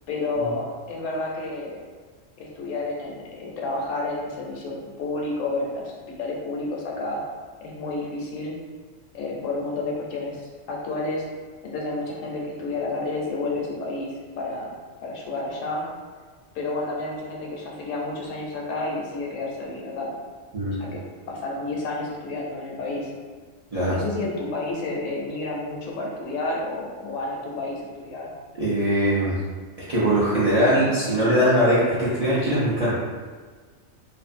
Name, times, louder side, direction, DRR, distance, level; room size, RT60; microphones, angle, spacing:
voice 1, 0.1-1.8 2.4-5.9 6.2-7.2 7.6-8.6 9.1-11.2 11.6-14.7 15.0-15.8 16.5-20.1 20.8-23.1 23.9-28.4 29.1-29.3, left 2 dB, 80° left, -2 dB, 1.0 m, -30 dB
voice 2, 28.6-29.3 29.9-32.9, equal, 50° right, -10 dB, 0.4 m, -21 dB
2.5 x 2.4 x 2.5 m, 1.5 s
omnidirectional pair, 1.3 m